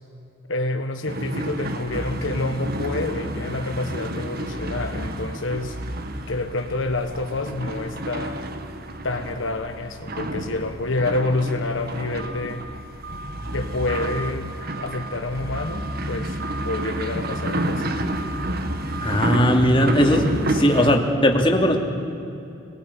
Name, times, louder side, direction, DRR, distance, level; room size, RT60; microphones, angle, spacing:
voice 1, 0.5-5.8 6.3-8.4 9.0-12.7 13.5-16.4 16.6-18.0, left 2 dB, 70° left, 6 dB, 1.2 m, -28 dB
sound 1, 1.1-21.0, right 1 dB, 50° right, 1.8 m, -30 dB
voice 2, 19.0-21.8, equal, 25° left, 2 dB, 2.7 m, -19 dB
27.0 x 21.0 x 9.9 m, 2.7 s
head